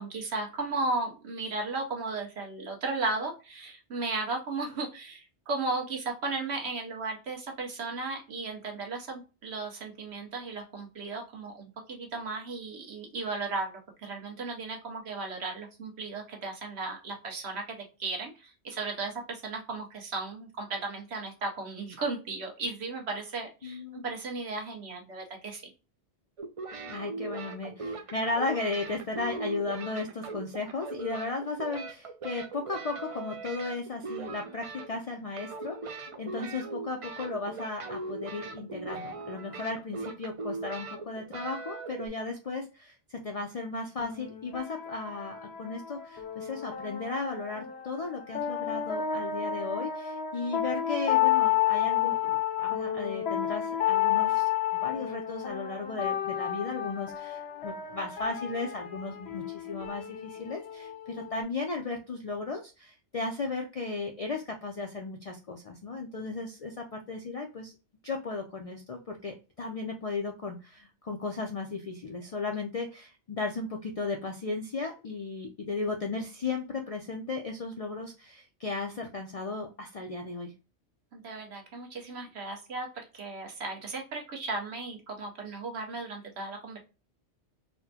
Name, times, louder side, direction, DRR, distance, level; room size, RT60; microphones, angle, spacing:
voice 1, 0.0-25.7 81.1-86.8, right 3 dB, 70° right, 2 dB, 1.2 m, -35 dB
voice 2, 23.6-24.1 26.9-54.5 54.8-67.7 68.0-80.5, left 3 dB, 55° left, 3 dB, 0.4 m, -35 dB
sound 1, 26.4-35.1 35.4-42.1, right 3 dB, 50° right, 0.4 m, -39 dB
sound 2, 44.0-61.4, left 10 dB, 70° left, 0.8 m, -31 dB
4.2 x 2.1 x 2.7 m, 0.31 s
omnidirectional pair, 1.2 m